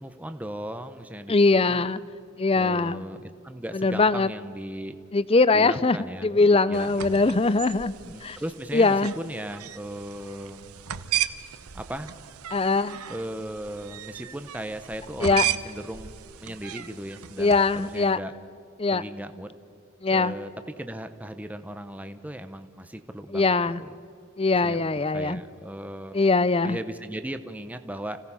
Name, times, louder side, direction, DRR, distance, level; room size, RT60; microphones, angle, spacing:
voice 1, 0.0-1.8 2.5-4.9 5.5-7.3 8.0-10.8 11.7-12.1 13.1-16.1 16.4-18.3 18.9-19.5 20.1-20.5 20.8-23.5 23.8-24.0 24.6-24.9 25.1-28.2, right 1 dB, 5° right, 9 dB, 0.7 m, -37 dB
voice 2, 1.3-2.0 2.4-3.1 3.7-4.3 5.1-6.0 6.2-7.9 8.2-8.4 8.7-9.1 12.5-13.0 15.2-15.4 17.4-18.2 18.8-19.0 20.0-20.3 23.3-23.8 24.4-25.4 26.1-26.8, left 3 dB, 25° left, 17 dB, 0.5 m, -21 dB
sound 1, 6.7-18.1, right 11 dB, 90° right, 0.8 m, -35 dB
30.0 x 17.0 x 5.6 m, 2.4 s
head